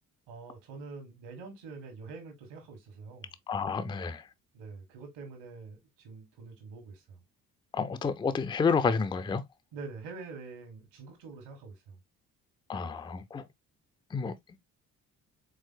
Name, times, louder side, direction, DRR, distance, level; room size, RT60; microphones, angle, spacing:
voice 1, 0.3-3.4 4.5-7.2 9.7-12.0, right 4 dB, 65° right, 1.5 m, -45 dB
voice 2, 3.5-4.2 7.7-9.4 12.7-13.4 14.1-14.3, left 5 dB, 10° left, 0.4 m, -29 dB
4.8 x 3.8 x 2.3 m
figure-of-eight pair, 45°, 45 cm